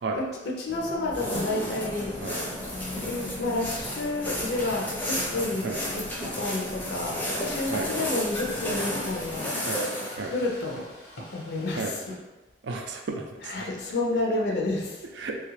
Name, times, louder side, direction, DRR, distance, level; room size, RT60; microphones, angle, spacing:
voice 1, 0.1-2.2 3.0-5.7 5.9-6.1 6.4-9.6 10.2-10.9 11.3-12.0 13.4-15.0, left 2 dB, 65° left, -1 dB, 0.4 m, -30 dB
sound 1, 0.7-9.4, left 1 dB, 25° right, 0.8 m, -42 dB
sound 2, 1.1-10.2, left 1 dB, 10° left, 0.5 m, -32 dB
sound 3, 7.4-12.2, equal, 90° left, 0.8 m, -45 dB
voice 2, 12.6-13.7 15.2-15.4, right 3 dB, 75° right, 4 dB, 0.4 m, -32 dB
2.9 x 2.4 x 3.1 m, 1.2 s
head